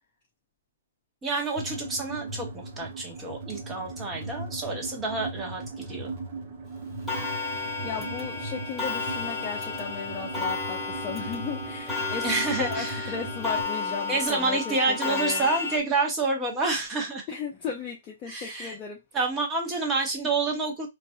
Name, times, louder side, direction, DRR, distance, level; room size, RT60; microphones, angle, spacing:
voice 1, 1.2-6.1 12.2-13.1 14.1-17.2 18.3-18.8 19.1-20.9, right 3 dB, 15° right, 1.2 m, -28 dB
sound 1, 1.6-13.6, right 3 dB, 45° right, 1.2 m, -38 dB
Clock, 7.1-15.8, left 4 dB, 5° left, 1.5 m, -32 dB
voice 2, 7.8-12.3 12.6-15.5 17.3-19.0, left 6 dB, 30° left, 0.7 m, -35 dB
3.9 x 2.6 x 2.3 m
figure-of-eight pair, 120°, 0 cm